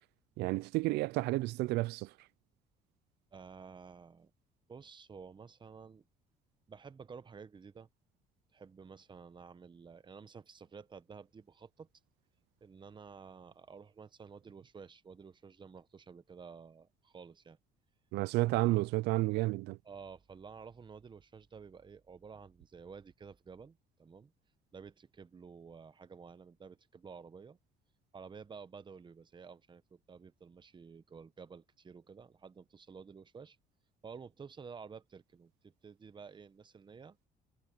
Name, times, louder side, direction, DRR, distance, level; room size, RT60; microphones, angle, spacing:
voice 1, 0.4-2.1 18.1-19.8, right 20 dB, 85° right, 0.4 m, -31 dB
voice 2, 3.3-4.3 4.7-6.0 6.7-7.9 8.5-11.9 12.6-17.6 19.8-24.3 24.7-27.6 28.1-33.6 34.0-37.2, right 5 dB, 25° right, 1.1 m, -52 dB
cardioid pair, 110°, 17 cm